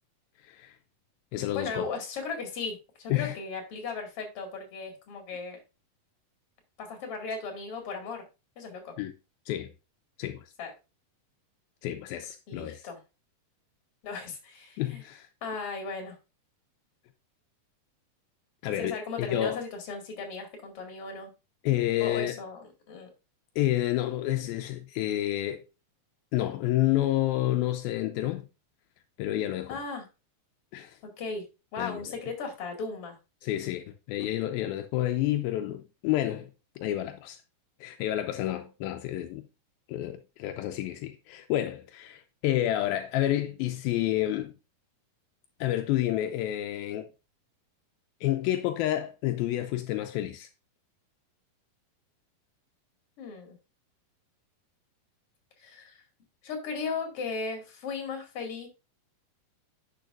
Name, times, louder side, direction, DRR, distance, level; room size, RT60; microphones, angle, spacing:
voice 1, 0.4-0.8 1.3-1.9 3.1-3.4 9.0-9.1 9.5-9.7 10.2-10.5 11.8-12.9 14.8-15.3 18.6-19.6 21.6-22.3 23.6-25.6 26.3-28.5 29.2-29.8 30.7-31.0 31.8-32.2 33.4-36.5 36.8-37.4 37.8-39.5 39.9-44.5 45.6-47.1 48.2-50.5, left 14 dB, 85° left, 2.4 m, -29 dB
voice 2, 1.5-5.6 6.8-8.2 8.6-8.9 10.6-10.7 12.5-13.0 14.0-15.0 15.4-16.2 18.6-21.3 22.0-23.1 29.7-30.1 31.0-31.4 31.7-33.2 53.2-53.6 55.6-56.0 56.4-58.7, left 4 dB, 45° left, 2.7 m, -36 dB
10.5 x 6.7 x 2.5 m
omnidirectional pair, 4.3 m